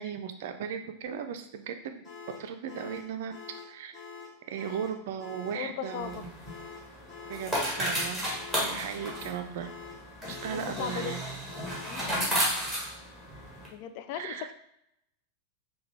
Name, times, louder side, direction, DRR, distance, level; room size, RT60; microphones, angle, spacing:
voice 1, 0.0-2.0 2.4-3.3 3.7-4.0 4.5-6.3 7.3-8.3 8.6-9.7 10.2-11.2 11.9-12.0 14.1-14.5, right 8 dB, 55° right, 7 dB, 0.4 m, -37 dB
sound 1, 2.0-12.0, left 5 dB, 25° left, 1.0 m, -46 dB
voice 2, 5.5-6.3 10.3-11.2 11.8-12.1 13.7-14.5, left 9 dB, 45° left, 10 dB, 0.3 m, -38 dB
sound 2, 6.0-13.7, equal, ahead, 1.6 m, -33 dB
5.6 x 2.2 x 3.2 m, 0.79 s
figure-of-eight pair, 90°, 0 cm